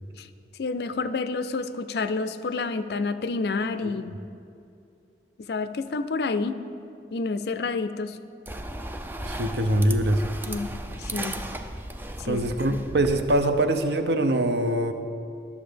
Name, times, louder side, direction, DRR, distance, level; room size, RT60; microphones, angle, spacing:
voice 1, 0.6-4.1 5.5-6.6 7.1-8.2 10.5-10.7 11.0-11.3 12.2-12.4, left 3 dB, 65° left, 12 dB, 0.4 m, -29 dB
sound 1, 8.5-13.8, right 1 dB, 10° right, 0.4 m, -35 dB
voice 2, 9.3-10.2 12.2-14.9, right 1 dB, 70° right, 8 dB, 0.7 m, -23 dB
11.5 x 6.9 x 5.1 m, 2.6 s
head